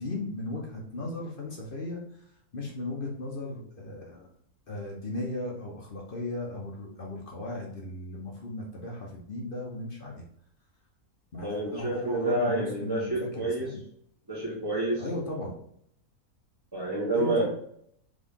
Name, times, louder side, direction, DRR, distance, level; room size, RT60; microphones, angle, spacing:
voice 1, 0.0-2.0 2.5-4.3 4.7-10.2 11.3-13.8 15.0-15.6 17.1-17.5, left 1 dB, 45° left, -1 dB, 0.9 m, -36 dB
voice 2, 11.4-13.7 14.3-15.0 16.7-17.5, right 2 dB, 15° right, -8 dB, 1.3 m, -28 dB
3.8 x 3.6 x 3.6 m, 0.67 s
omnidirectional pair, 1.6 m